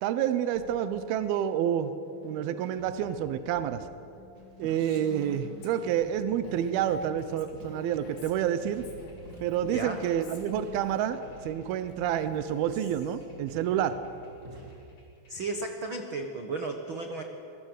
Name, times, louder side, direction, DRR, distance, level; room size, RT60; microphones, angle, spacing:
voice 1, 0.0-1.9 2.2-3.9 4.6-8.8 9.4-14.0, right 10 dB, 80° right, 11 dB, 2.8 m, -29 dB
sound 1, 0.5-15.5, left 1 dB, 40° left, 7.1 m, -52 dB
sound 2, 4.3-15.0, right 1 dB, 30° right, 3.9 m, -53 dB
Female speech woman speaking, 4.7-11.1 11.9-13.3, left 2 dB, 75° left, 5.1 m, -49 dB
voice 2, 9.6-10.0 15.3-17.2, right 3 dB, 55° right, 4 dB, 1.5 m, -34 dB
27.5 x 22.5 x 8.2 m, 2.7 s
omnidirectional pair, 4.3 m